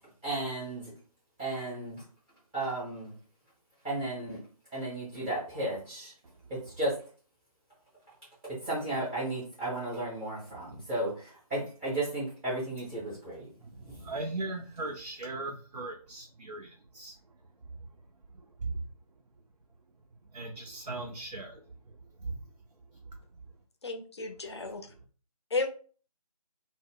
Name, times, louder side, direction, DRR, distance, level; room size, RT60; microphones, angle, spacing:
voice 1, 0.2-0.9 1.4-2.0 2.5-3.1 3.8-4.4 4.7-6.1 6.5-7.0 8.4-13.5 13.8-14.1, right 2 dB, 5° right, -10 dB, 0.6 m, -34 dB
voice 2, 13.6-17.2 18.6-18.8 20.3-22.4, right 2 dB, 80° right, 1 dB, 0.5 m, -38 dB
voice 3, 23.8-24.8 25.5-25.7, left 3 dB, 45° left, 6 dB, 0.5 m, -33 dB
2.0 x 2.0 x 3.6 m, 0.39 s
figure-of-eight pair, 160°, 20 cm